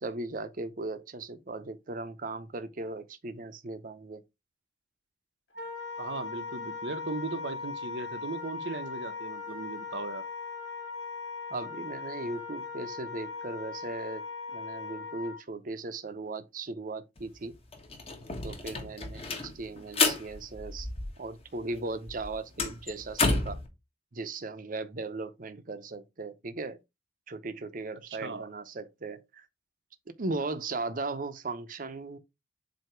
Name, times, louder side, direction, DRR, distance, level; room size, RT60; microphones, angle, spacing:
voice 1, 0.0-4.2 11.5-14.2 14.5-17.5 18.4-20.9 21.2-23.6 24.1-26.8 27.3-29.5 30.2-32.2, right 3 dB, 50° right, 0.7 m, -37 dB
Wind instrument woodwind instrument, 5.5-15.4, left 5 dB, 90° left, 1.7 m, -39 dB
voice 2, 6.0-10.3 28.2-28.5, right 3 dB, 75° right, 0.9 m, -37 dB
sound 1, 17.2-17.3 17.5-21.5 21.7-23.7, left 3 dB, 35° left, 1.3 m, -31 dB
7.8 x 2.8 x 4.5 m
head